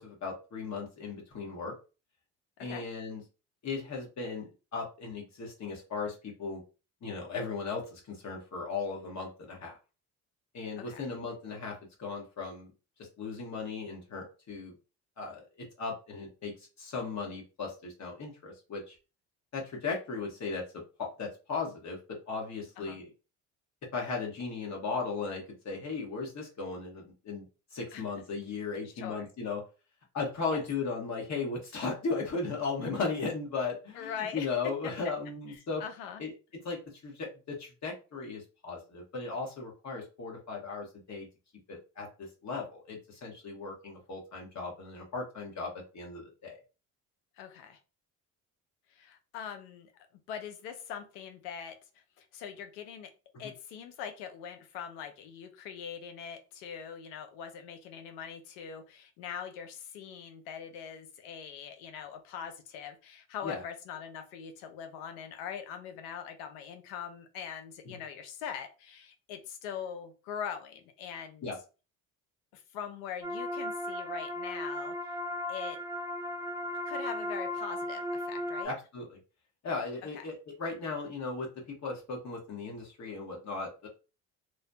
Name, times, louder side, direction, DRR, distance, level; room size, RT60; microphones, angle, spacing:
voice 1, 0.0-1.7 2.6-3.2 3.6-6.6 7.0-9.8 10.5-12.7 13.2-14.7 15.2-19.0 19.5-23.1 23.9-27.4 27.7-29.6 30.1-35.8 36.2-36.3 36.6-41.3 41.7-46.6 53.3-53.5 63.4-63.6 67.9-68.0 71.4-71.6 78.6-79.2 79.6-83.9, left 4 dB, 50° left, 0 dB, 1.4 m, -37 dB
voice 2, 10.8-11.1 22.8-23.0 27.9-28.0 29.0-29.2 30.5-30.6 34.0-34.5 34.8-34.9 35.5-36.2 47.4-47.8 48.9-49.9 50.3-53.1 53.4-71.5 72.5-75.0 75.5-75.8 76.9-78.7 80.1-80.2, left 8 dB, 85° left, 7 dB, 0.6 m, -42 dB
sound 1, 73.2-78.6, left 1 dB, 10° right, 0.5 m, -36 dB
3.1 x 2.2 x 2.6 m, 0.32 s
supercardioid pair, 70°, 36 cm